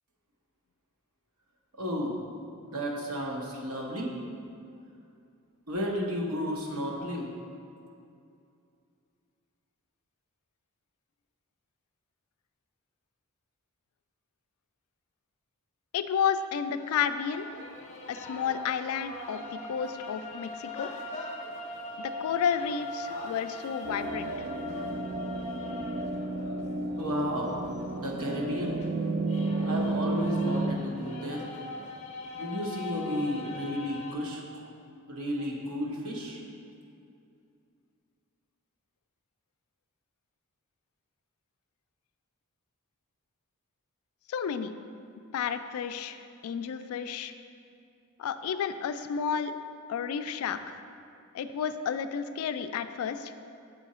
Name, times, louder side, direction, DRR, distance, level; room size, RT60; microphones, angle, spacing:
voice 1, 1.8-2.2 2.7-4.1 5.7-7.3 27.0-27.6 27.9-28.8 29.6-31.5 32.3-34.4 35.1-36.4, equal, 85° right, -2 dB, 1.0 m, -33 dB
voice 2, 15.9-17.5 18.1-20.9 22.0-24.3 44.3-44.7 45.3-46.2 46.4-47.3 48.2-49.5 49.9-50.8 51.3-53.3, left 7 dB, 75° left, 12 dB, 0.3 m, -31 dB
sound 1, 16.8-34.1, left 3 dB, 35° left, 0.6 m, -41 dB
sound 2, 23.8-30.8, right 2 dB, 45° right, 0.3 m, -32 dB
6.8 x 3.7 x 4.2 m, 2.5 s
head